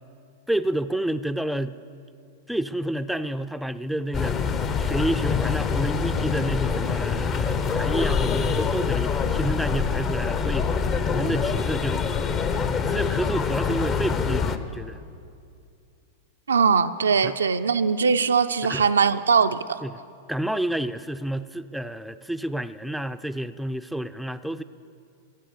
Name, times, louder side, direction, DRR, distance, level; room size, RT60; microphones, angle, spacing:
voice 1, 0.5-1.8 2.5-4.4 4.8-10.7 11.1-12.0 12.8-15.0 17.2-17.3 18.6-18.9 19.8-20.0 20.3-24.6, right 1 dB, ahead, 10 dB, 0.4 m, -29 dB
sound 1, 4.1-14.6, left 6 dB, 35° left, 0.7 m, -25 dB
voice 2, 16.5-19.8, right 5 dB, 85° right, 9 dB, 0.4 m, -21 dB
15.0 x 7.3 x 7.0 m, 2.4 s
hypercardioid pair, 105°, 0 cm